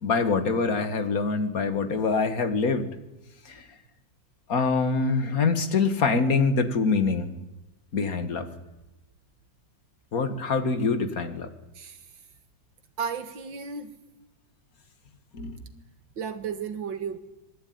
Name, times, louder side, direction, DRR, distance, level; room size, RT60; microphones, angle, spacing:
voice 1, 0.0-2.9 3.5-3.6 4.5-7.3 7.9-8.5 10.1-11.5 15.3-15.6, left 4 dB, 50° left, 10 dB, 2.2 m, -25 dB
voice 2, 11.7-12.1 13.0-13.9 16.2-17.2, right 6 dB, 85° right, 10 dB, 2.6 m, -33 dB
26.0 x 20.0 x 9.5 m, 0.98 s
omnidirectional pair, 2.0 m